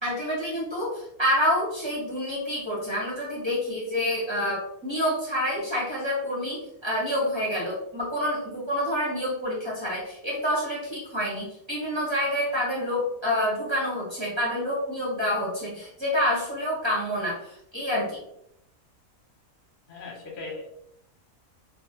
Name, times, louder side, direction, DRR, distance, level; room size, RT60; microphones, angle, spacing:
voice 1, 0.0-18.2, equal, 25° right, -7 dB, 0.7 m, -28 dB
voice 2, 19.9-20.8, left 3 dB, 45° left, -1 dB, 0.8 m, -38 dB
2.4 x 2.3 x 2.7 m, 0.76 s
omnidirectional pair, 1.5 m